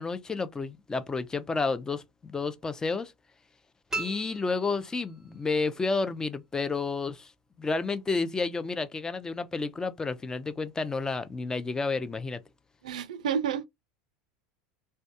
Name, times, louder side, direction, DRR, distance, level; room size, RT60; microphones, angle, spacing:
voice 1, 0.0-3.1 4.0-7.3 7.6-12.4, left 4 dB, 15° left, 0.4 m, -31 dB
sound 1, 3.9-5.5, right 3 dB, 10° right, 0.9 m, -38 dB
voice 2, 12.8-13.7, right 7 dB, 90° right, 0.3 m, -30 dB
2.2 x 2.2 x 2.7 m
hypercardioid pair, 100°, 4 cm